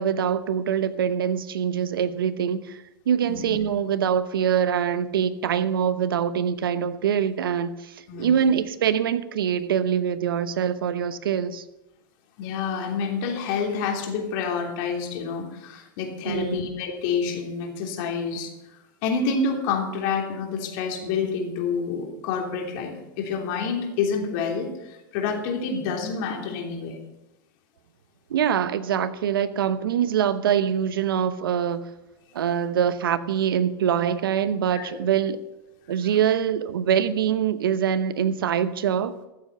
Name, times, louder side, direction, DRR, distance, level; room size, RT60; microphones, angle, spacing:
voice 1, 0.0-11.6 16.3-16.6 28.3-31.9 32.3-35.4 35.9-39.1, right 8 dB, 85° right, 0.9 m, -24 dB
voice 2, 8.1-8.4 12.4-18.5 19.0-27.0 34.7-35.0, left 5 dB, 60° left, 3.2 m, -28 dB
14.0 x 7.8 x 6.6 m
hypercardioid pair, 105°, 12 cm